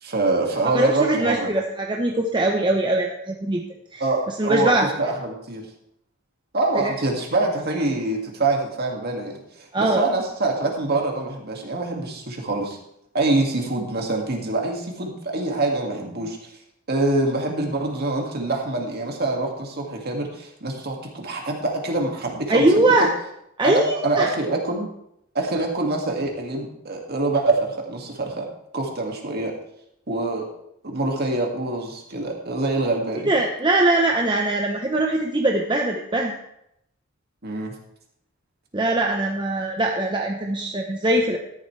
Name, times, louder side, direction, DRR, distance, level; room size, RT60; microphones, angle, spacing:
voice 1, 0.0-1.5 4.0-5.6 6.5-12.8 13.1-16.5 16.9-23.1 23.6-24.9 25.3-28.5 28.7-29.5 30.1-30.5 30.8-33.3 37.4-37.7, right 2 dB, 50° right, 1 dB, 2.1 m, -25 dB
voice 2, 0.7-3.6 3.9-4.0 4.4-4.9 6.7-6.9 9.7-10.1 22.5-23.1 23.6-24.3 33.3-36.4 38.7-41.4, right 2 dB, 20° right, 1 dB, 0.9 m, -21 dB
13.0 x 11.0 x 3.3 m, 0.77 s
head